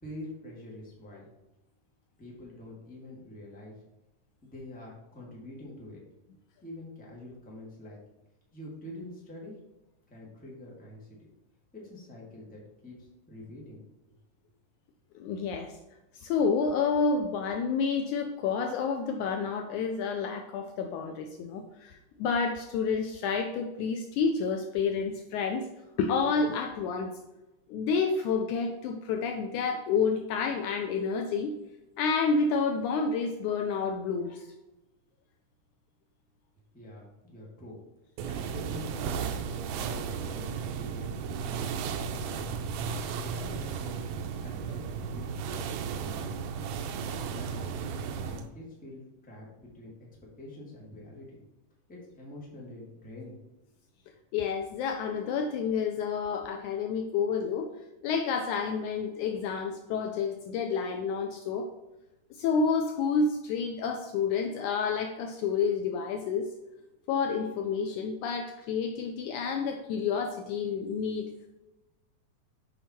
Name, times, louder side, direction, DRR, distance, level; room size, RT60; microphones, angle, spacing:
voice 1, 0.0-1.2 2.2-3.7 4.4-6.0 6.6-8.0 8.5-9.6 10.1-11.1 11.7-13.8 36.7-37.8 38.2-41.1 41.4-42.6 43.1-44.0 44.4-45.6 45.9-46.4 47.2-47.6 48.2-49.9 50.2-51.4 51.9-53.4, left 1 dB, 5° left, -4 dB, 1.2 m, -46 dB
voice 2, 15.2-15.7 16.1-25.6 26.0-27.1 27.7-31.5 32.0-34.5 47.0-47.2 54.3-57.7 58.0-61.7 62.4-66.5 67.1-71.3, left 5 dB, 80° left, 5 dB, 1.9 m, -29 dB
sound 1, 38.2-48.5, right 6 dB, 90° right, 1.5 m, -34 dB
7.5 x 5.5 x 4.3 m, 1.0 s
omnidirectional pair, 3.9 m